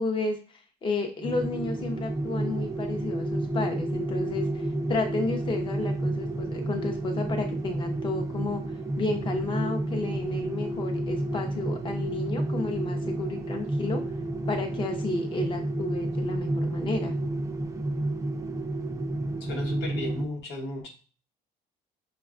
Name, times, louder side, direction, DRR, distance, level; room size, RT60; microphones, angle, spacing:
voice 1, 0.0-14.0 14.5-17.1, left 3 dB, 30° left, 4 dB, 0.6 m, -32 dB
sound 1, 1.2-20.2, right 1 dB, 20° right, 0.4 m, -30 dB
voice 2, 19.4-20.9, left 2 dB, 85° left, 1 dB, 1.0 m, -35 dB
5.2 x 2.2 x 2.4 m, 0.37 s
cardioid pair, 110°, 17 cm